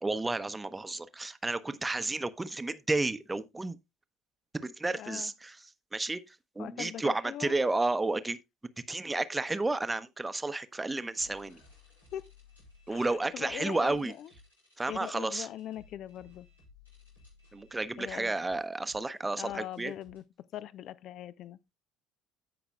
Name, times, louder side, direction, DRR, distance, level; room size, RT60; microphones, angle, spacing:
voice 1, 0.0-3.8 4.5-5.6 5.9-8.4 8.9-11.6 12.9-14.1 14.8-15.5 17.5-19.9, right 2 dB, 15° right, 0.9 m, -32 dB
voice 2, 5.0-5.3 6.6-7.6 12.1-12.3 12.9-14.3 14.9-16.5 18.0-18.3 19.4-20.2 20.5-21.7, left 11 dB, 50° left, 0.6 m, -41 dB
sound 1, 11.1-20.2, left 3 dB, 90° left, 6.1 m, -59 dB
16.5 x 6.0 x 2.3 m
figure-of-eight pair, 60°, 0 cm